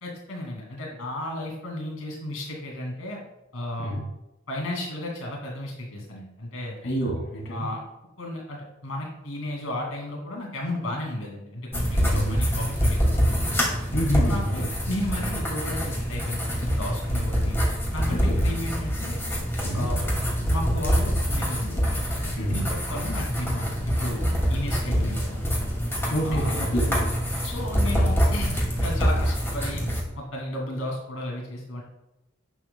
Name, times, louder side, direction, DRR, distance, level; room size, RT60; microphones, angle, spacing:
voice 1, 0.0-3.2 3.5-3.9 4.5-6.8 7.5-7.8 8.2-13.5 14.2-17.6 17.9-19.2 19.7-20.0 20.5-25.4 26.2-26.5 27.4-29.8 30.1-31.8, left 1 dB, 85° left, -1 dB, 2.7 m, -33 dB
voice 2, 6.8-7.7 12.1-12.4 13.9-14.7 18.1-18.4 19.6-19.9 22.3-22.6 26.1-27.1, equal, 60° left, -2 dB, 3.0 m, -27 dB
sound 1, 11.7-30.0, equal, 10° left, 2.4 m, -25 dB
11.0 x 9.4 x 2.3 m, 0.92 s
head